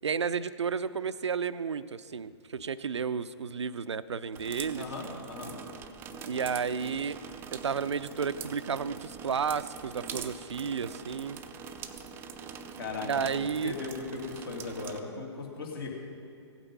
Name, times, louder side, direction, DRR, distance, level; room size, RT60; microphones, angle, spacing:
voice 1, 0.0-4.9 6.3-7.2 7.5-11.4 13.0-13.7, right 6 dB, 75° right, 15 dB, 0.4 m, -32 dB
sound 1, 4.3-15.0, right 6 dB, 15° right, 0.5 m, -43 dB
voice 2, 4.8-5.6 12.8-15.9, left 3 dB, 55° left, 0 dB, 2.6 m, -38 dB
16.0 x 8.9 x 5.3 m, 2.5 s
figure-of-eight pair, 120°, 15 cm